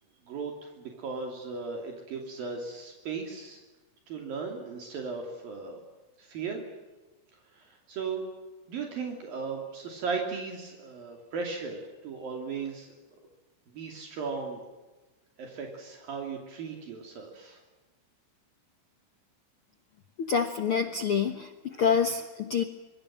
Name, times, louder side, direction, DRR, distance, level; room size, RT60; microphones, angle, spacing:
voice 1, 0.3-3.6 4.1-5.8 6.2-6.6 7.5-8.2 8.7-12.9 13.7-14.6 15.4-17.6, right 5 dB, 65° right, 2 dB, 4.6 m, -36 dB
voice 2, 20.2-22.6, left 6 dB, 85° left, 8 dB, 1.2 m, -27 dB
25.5 x 24.5 x 7.7 m, 1.2 s
omnidirectional pair, 4.5 m